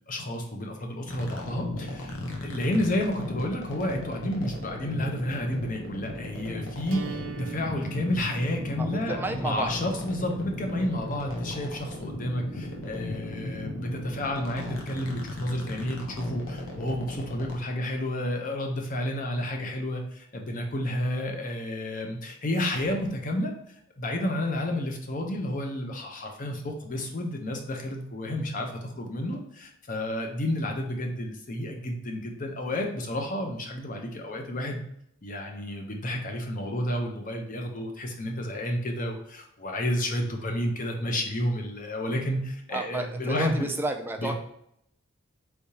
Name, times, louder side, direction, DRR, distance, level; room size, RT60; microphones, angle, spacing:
voice 1, 0.1-23.5 24.0-34.8 35.2-43.7 44.2-44.3, left 1 dB, 40° left, 3 dB, 0.7 m, -31 dB
sound 1, 1.1-17.6, left 1 dB, 75° left, 0.9 m, -36 dB
sound 2, 6.9-12.9, right 6 dB, 65° right, 0.5 m, -45 dB
voice 2, 8.8-9.7 42.7-44.3, right 2 dB, 10° right, 4 dB, 0.3 m, -31 dB
4.6 x 3.4 x 2.8 m, 0.74 s
head